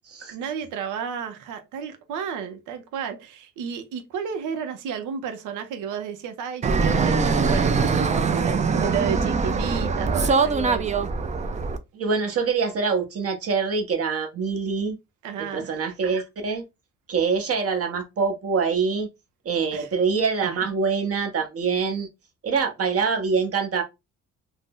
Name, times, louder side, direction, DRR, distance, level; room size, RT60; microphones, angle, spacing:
voice 1, 0.3-11.0 15.2-15.8 19.7-19.9, right 7 dB, 85° right, 0.6 m, -32 dB
Fixed-wing aircraft airplane, 6.6-11.8, right 4 dB, 25° right, 0.4 m, -22 dB
voice 2, 11.9-15.0 15.4-16.6 17.1-19.1 19.4-22.1 22.4-23.8, right 5 dB, 50° right, 0.9 m, -25 dB
2.6 x 2.0 x 3.5 m
cardioid pair, 90°, 30 cm